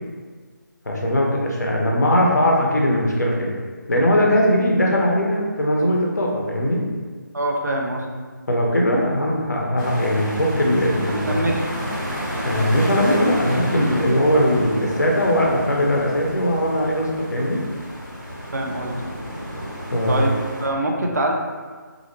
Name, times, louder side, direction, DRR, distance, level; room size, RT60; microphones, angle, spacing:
voice 1, 0.9-3.5 3.9-6.8 8.5-11.5 12.4-17.6 19.9-20.2, equal, 60° left, -2 dB, 0.6 m, -20 dB
voice 2, 7.3-8.0 11.3-11.7 18.5-18.9 20.1-21.3, right 1 dB, 55° right, 0 dB, 0.4 m, -24 dB
sound 1, 9.8-20.7, equal, 85° right, 1.2 m, -30 dB
2.4 x 2.0 x 2.9 m, 1.5 s
figure-of-eight pair, 155°, 11 cm